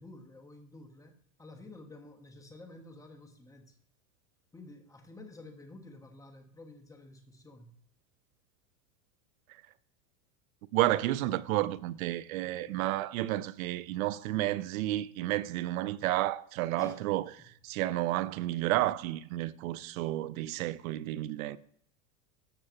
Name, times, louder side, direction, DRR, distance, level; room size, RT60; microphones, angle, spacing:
voice 1, 0.0-3.8 4.5-7.8 12.6-12.9 16.8-17.5, left 2 dB, 10° left, 1.2 m, -51 dB
voice 2, 10.7-17.3 17.6-21.6, right 15 dB, 75° right, 0.7 m, -31 dB
13.5 x 6.4 x 2.9 m
supercardioid pair, 125°, 42 cm